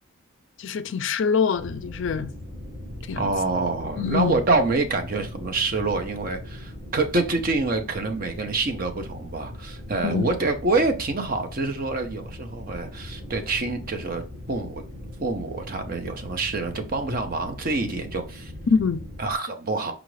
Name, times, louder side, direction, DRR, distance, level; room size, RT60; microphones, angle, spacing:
voice 1, 0.6-2.3 3.1-3.3 4.0-4.4 10.0-10.3 18.7-19.0, left 5 dB, 60° left, 0.4 m, -24 dB
sound 1, 1.5-19.4, left 1 dB, 60° right, 2.2 m, -39 dB
voice 2, 3.2-14.8 15.2-18.5 19.2-19.9, right 3 dB, 40° right, 0.6 m, -26 dB
4.9 x 2.4 x 3.1 m
head